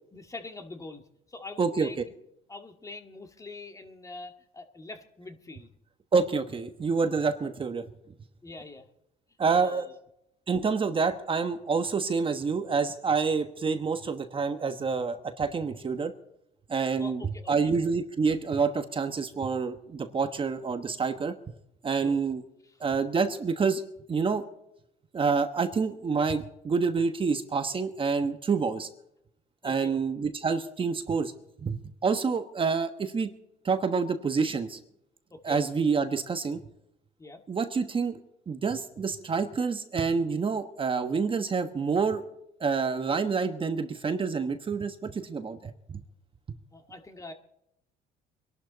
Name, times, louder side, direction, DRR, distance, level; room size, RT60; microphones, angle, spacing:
voice 1, 0.1-1.0 1.3-2.1 2.5-5.7 8.4-8.9 9.5-10.0 17.0-17.7 22.0-22.2 22.6-22.8 29.6-30.0 32.0-32.1 35.3-35.6 37.2-37.4 46.7-47.3, left 2 dB, 20° left, 5 dB, 1.8 m, -44 dB
voice 2, 1.6-1.9 6.1-7.9 9.4-9.8 10.5-16.1 16.7-21.4 21.8-22.4 22.8-23.8 24.1-24.4 25.1-28.9 29.6-31.3 31.6-33.3 33.6-34.8 35.4-36.6 37.5-38.2 38.5-42.2 42.6-46.0, right 5 dB, 30° right, 8 dB, 1.2 m, -27 dB
25.0 x 12.0 x 4.1 m, 0.80 s
cardioid pair, 110°, 17 cm